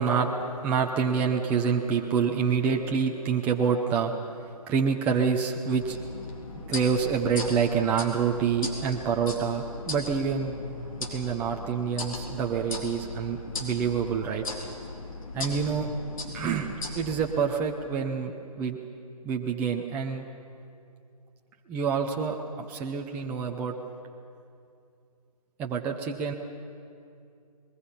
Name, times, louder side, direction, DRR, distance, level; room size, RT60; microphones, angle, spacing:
voice 1, 0.0-4.1 4.7-6.0 6.7-10.6 11.1-14.4 15.3-15.9 16.3-18.3 18.6-18.8 19.2-20.2 21.7-23.7 25.6-26.3, right 6 dB, 10° right, 1 dB, 0.5 m, -27 dB
sound 1, 5.8-17.4, left 3 dB, 60° left, 3.6 m, -38 dB
25.0 x 21.0 x 5.7 m, 2.5 s
hypercardioid pair, 155°, 20 cm